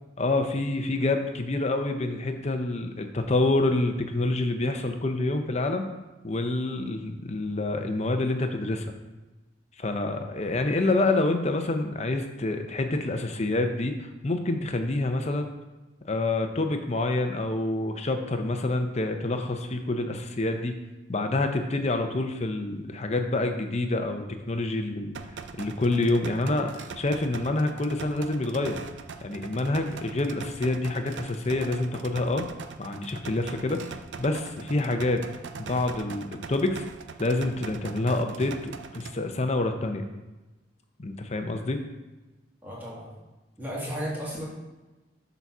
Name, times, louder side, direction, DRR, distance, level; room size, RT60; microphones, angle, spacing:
voice 1, 0.2-5.9 6.2-8.8 9.8-15.5 16.1-20.7 21.1-25.2 25.6-28.8 29.2-32.4 32.8-33.8 34.2-35.2 35.6-36.8 37.2-40.0 41.0-41.8, left 2 dB, 35° left, 6 dB, 0.7 m, -27 dB
sound 1, 25.1-39.1, right 5 dB, 80° right, 0.5 m, -42 dB
voice 2, 42.6-43.1 43.6-44.5, equal, 10° right, -7 dB, 2.2 m, -34 dB
6.8 x 4.1 x 6.0 m, 1.1 s
head